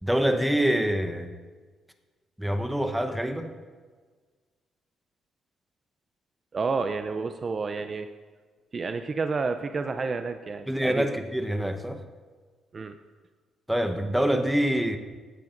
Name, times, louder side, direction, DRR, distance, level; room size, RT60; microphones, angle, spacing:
voice 1, 0.0-1.3 2.4-3.5 10.7-12.0 13.7-15.0, equal, 5° right, 6 dB, 0.9 m, -25 dB
voice 2, 6.5-8.1 8.7-11.1 12.7-12.9, right 4 dB, 40° right, 8 dB, 0.5 m, -30 dB
16.0 x 9.5 x 2.6 m, 1.5 s
cardioid pair, 90°, 0 cm